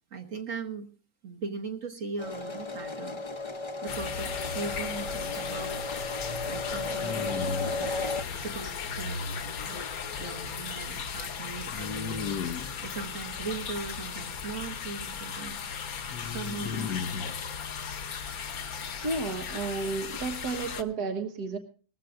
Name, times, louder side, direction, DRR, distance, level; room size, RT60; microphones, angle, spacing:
voice 1, 0.1-0.9 1.2-3.2 3.8-5.8 6.5-8.0 8.3-9.9 10.2-15.6 16.2-16.9, right 4 dB, 55° right, 3 dB, 1.6 m, -39 dB
sound 1, 2.2-8.2, left 3 dB, 30° left, 0.6 m, -34 dB
sound 2, 3.9-20.8, left 6 dB, 65° left, 1.5 m, -37 dB
sound 3, 4.3-4.9 7.0-8.0 11.7-12.8 16.1-17.4, left 6 dB, 85° left, 1.4 m, -35 dB
voice 2, 19.0-21.6, right 3 dB, 80° right, 5 dB, 1.9 m, -32 dB
20.0 x 15.0 x 2.6 m, 0.39 s
omnidirectional pair, 1.7 m